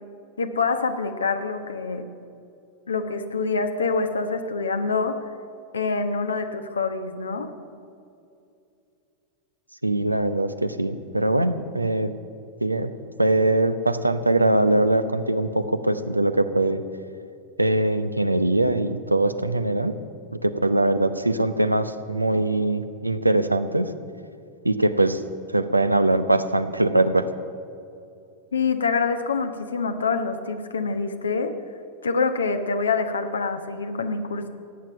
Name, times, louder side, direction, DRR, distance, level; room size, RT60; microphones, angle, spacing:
voice 1, 0.4-2.1 2.9-5.2 5.7-7.5 28.5-31.5 32.0-34.5, left 4 dB, 70° left, 7 dB, 1.2 m, -26 dB
voice 2, 9.8-12.1 12.6-12.9 13.2-16.8 17.6-19.9 20.4-23.9 24.6-25.2 25.5-27.2, right 2 dB, 85° right, 10 dB, 0.7 m, -22 dB
16.0 x 9.1 x 9.4 m, 2.6 s
figure-of-eight pair, 90°, 0 cm